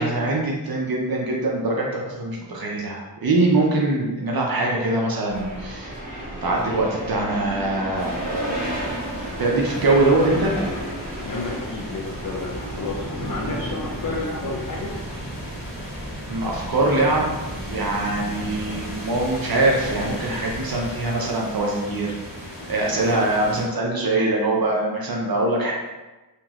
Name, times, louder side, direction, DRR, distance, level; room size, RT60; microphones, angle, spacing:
voice 1, 0.0-6.0 6.4-8.9 9.4-10.5 16.3-17.3 17.7-22.1 22.7-25.7, right 2 dB, 55° right, -2 dB, 0.6 m, -23 dB
sound 1, 5.3-20.6, equal, 20° right, 0.9 m, -33 dB
sound 2, 8.0-23.7, equal, 70° left, 1.4 m, -38 dB
voice 2, 11.2-14.9, left 3 dB, 50° left, -3 dB, 0.5 m, -31 dB
2.9 x 2.8 x 2.4 m, 1.1 s
wide cardioid pair, 65°, 43 cm